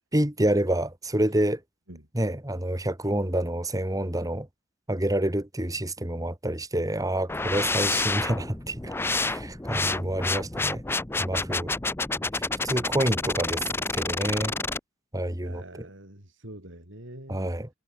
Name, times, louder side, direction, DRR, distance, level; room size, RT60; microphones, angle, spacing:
voice 1, 0.1-1.6 2.1-4.5 4.9-10.8 11.2-11.7 12.3-13.6 14.0-14.5 15.1-15.6 17.3-17.7, right 1 dB, 15° right, 2.0 m, -28 dB
sound 1, 7.3-14.8, left 3 dB, 10° left, 0.6 m, -29 dB
voice 2, 15.4-17.5, right 1 dB, 65° right, 5.9 m, -45 dB
head